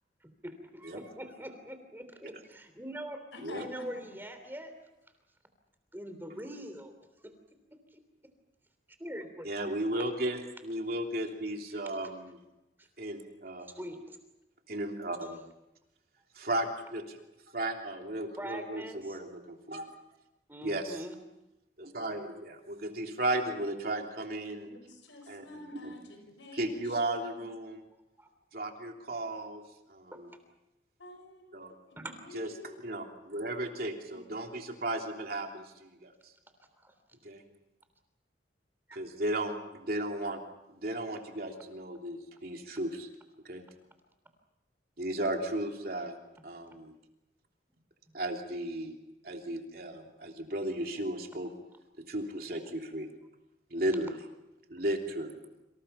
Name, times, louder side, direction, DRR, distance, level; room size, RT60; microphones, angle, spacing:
voice 1, 0.2-3.2 3.6-4.7 5.9-6.9 7.2-7.3 7.9-8.0 9.0-9.5 9.9-10.1 12.8-12.9 13.6-14.2 18.4-19.2 20.5-21.2 28.2-28.3 30.1-30.2 32.0-32.2 36.8-36.9 38.9-39.0, right 1 dB, 10° right, 7 dB, 3.3 m, -43 dB
voice 2, 3.3-4.0 24.5-27.4 31.0-32.8 34.1-34.8, left 2 dB, 90° left, 7 dB, 5.8 m, -49 dB
voice 3, 9.4-12.4 13.0-13.8 14.7-15.4 16.3-17.2 17.5-19.9 20.6-21.0 21.8-24.7 25.3-25.4 25.7-25.9 26.5-27.8 28.5-29.6 29.9-30.3 31.5-31.7 32.3-32.5 32.8-36.3 37.2-37.4 38.9-40.4 40.7-43.1 43.4-43.6 45.0-46.1 46.4-46.9 48.1-48.9 49.2-51.5 52.1-53.1 53.7-54.2 54.7-55.3, right 1 dB, 55° right, 2 dB, 3.2 m, -35 dB
27.5 x 27.0 x 5.8 m, 0.92 s
head